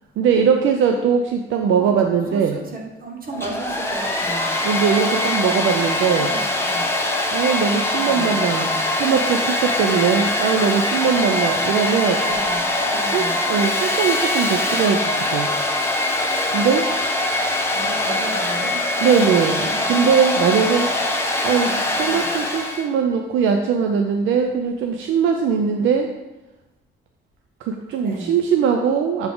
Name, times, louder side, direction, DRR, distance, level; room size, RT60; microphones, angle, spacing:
voice 1, 0.2-2.6 4.6-6.3 7.3-12.2 13.1-15.5 16.5-16.8 19.0-20.9 21.4-26.1 27.6-29.3, right 6 dB, 75° right, 4 dB, 0.5 m, -20 dB
voice 2, 2.3-4.5 6.1-6.9 8.0-8.4 12.1-13.4 17.7-18.8 19.2-20.1 21.8-22.3 27.9-28.3, right 2 dB, 45° right, 0 dB, 1.5 m, -34 dB
Domestic sounds home sounds, 3.3-22.9, left 1 dB, 10° left, 0.8 m, -22 dB
7.0 x 3.9 x 3.8 m, 1.0 s
cardioid pair, 90°, 20 cm